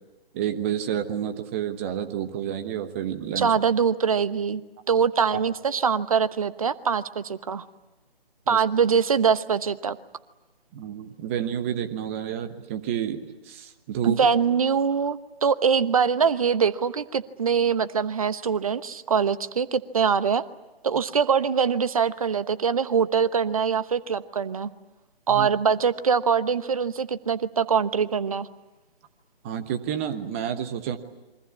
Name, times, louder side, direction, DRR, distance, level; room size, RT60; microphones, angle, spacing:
voice 1, 0.3-3.5 5.3-5.4 8.5-8.6 10.7-14.2 25.3-25.5 29.4-31.0, right 9 dB, 15° right, 8 dB, 1.1 m, -30 dB
voice 2, 3.4-4.6 4.9-7.6 8.5-10.0 14.0-20.4 20.8-24.7 25.3-28.5, right 6 dB, 35° right, 14 dB, 1.0 m, -23 dB
28.5 x 24.0 x 8.5 m, 1.1 s
figure-of-eight pair, 145°, 31 cm